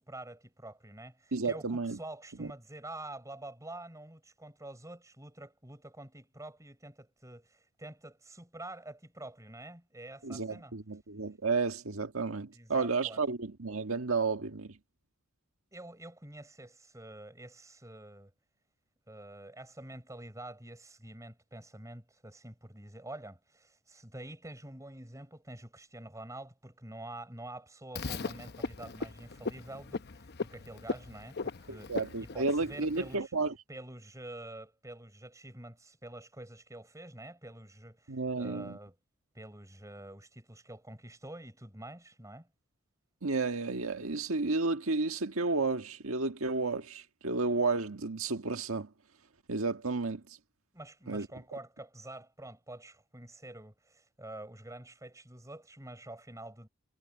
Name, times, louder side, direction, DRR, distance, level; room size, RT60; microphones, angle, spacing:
voice 1, 0.0-10.7 12.5-13.2 15.7-18.3 19.1-33.3 33.7-39.0 39.3-42.5 50.7-56.7, right 1 dB, 15° right, 7.1 m, -47 dB
voice 2, 1.3-2.0 2.4-2.5 10.2-14.8 31.7-33.5 38.1-38.8 43.2-48.9 49.5-50.2 51.1-51.3, right 3 dB, 85° right, 1.6 m, -32 dB
Frog, 28.0-33.2, left 4 dB, 50° left, 0.9 m, -39 dB
head